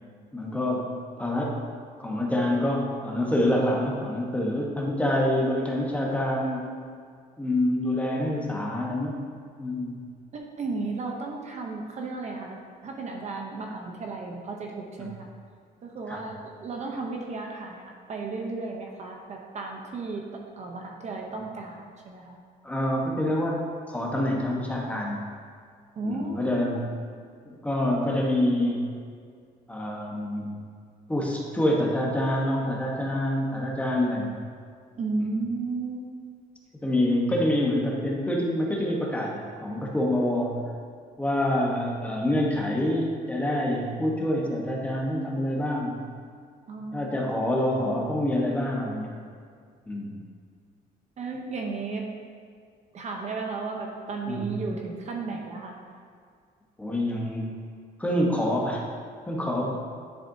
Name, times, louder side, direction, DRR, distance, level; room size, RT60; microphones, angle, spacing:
voice 1, 0.3-0.9 1.2-1.6 2.0-6.7 7.4-9.2 9.6-10.0 15.0-15.1 16.1-16.2 22.6-23.6 23.9-25.2 26.0-26.9 27.4-28.9 29.7-30.5 31.1-34.4 35.2-35.4 36.8-40.7 41.2-45.9 46.9-49.2 49.9-50.1 54.3-54.5 56.8-57.5 58.0-58.8 59.3-59.8, left 1 dB, 10° left, -2 dB, 1.1 m, -26 dB
voice 2, 10.3-15.3 15.8-20.3 20.6-22.4 25.9-26.7 35.0-36.0 46.7-47.3 51.2-52.1 52.9-55.8, right 3 dB, 45° right, 1 dB, 0.8 m, -34 dB
10.5 x 4.2 x 2.7 m, 2.1 s
cardioid pair, 110°, 17 cm